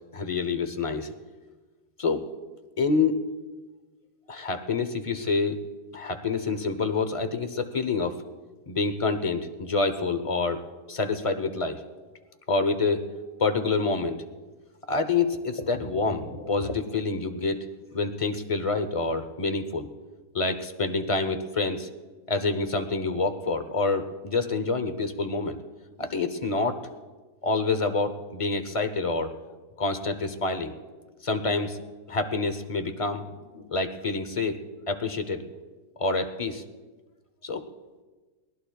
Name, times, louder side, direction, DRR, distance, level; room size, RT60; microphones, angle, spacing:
voice 1, 0.1-1.1 2.0-2.3 2.8-3.2 4.3-5.6 5.9-8.2 8.7-10.6 10.9-11.8 12.5-13.1 13.4-14.2 14.9-17.7 17.9-19.9 20.3-21.9 22.3-25.6 26.0-26.8 27.4-29.3 29.8-30.7 31.2-31.8 32.1-34.6 34.9-35.4 36.0-36.6 37.4-37.6, left 3 dB, 35° left, 8 dB, 0.5 m, -27 dB
23.0 x 19.0 x 2.3 m, 1.3 s
omnidirectional pair, 1.8 m